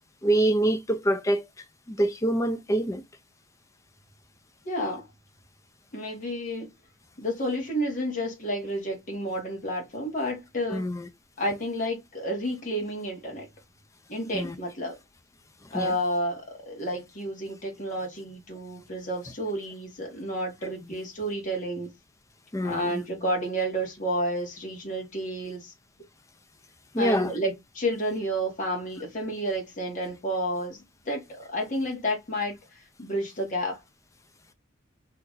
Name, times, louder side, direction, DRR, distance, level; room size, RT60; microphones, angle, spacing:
voice 1, 0.2-1.4 1.9-3.0 10.7-11.1 14.3-14.6 15.7-15.9 22.5-23.0 26.9-27.3, right 1 dB, 15° left, 0.4 m, -25 dB
voice 2, 4.6-5.1 5.9-6.7 7.2-10.9 11.4-13.5 14.1-15.0 15.7-21.9 22.6-25.7 27.0-32.6 33.0-33.8, equal, 40° left, 1.2 m, -30 dB
2.9 x 2.4 x 3.8 m
head